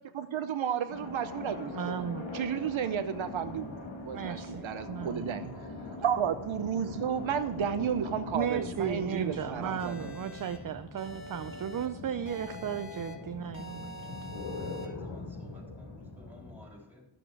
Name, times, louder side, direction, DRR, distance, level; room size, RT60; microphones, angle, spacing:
voice 1, 0.1-2.1 2.3-4.4 4.6-5.5 6.0-10.1, right 8 dB, 85° right, 9 dB, 0.8 m, -32 dB
sound 1, 0.9-16.6, left 3 dB, 75° left, 1.8 m, -42 dB
voice 2, 1.7-2.3 4.1-5.2 8.3-13.9, right 8 dB, 45° right, 10 dB, 0.5 m, -35 dB
sound 2, 9.8-10.6 11.0-11.9 12.3-13.1 13.5-14.9, left 1 dB, 35° left, 1.8 m, -45 dB
voice 3, 13.7-14.3 14.6-17.1, left 1 dB, 5° right, -1 dB, 3.7 m, -54 dB
13.0 x 7.0 x 4.7 m, 1.0 s
wide cardioid pair, 100°, 46 cm